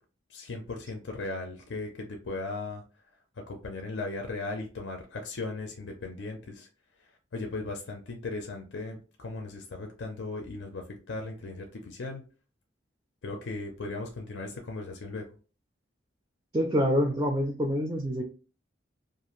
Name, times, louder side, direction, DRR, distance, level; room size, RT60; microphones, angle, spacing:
voice 1, 0.3-2.8 3.5-6.7 7.3-12.2 13.2-15.3, left 3 dB, 70° left, 3 dB, 0.5 m, -37 dB
voice 2, 16.5-18.2, equal, 20° right, 1 dB, 0.4 m, -26 dB
2.4 x 2.4 x 2.9 m, 0.37 s
head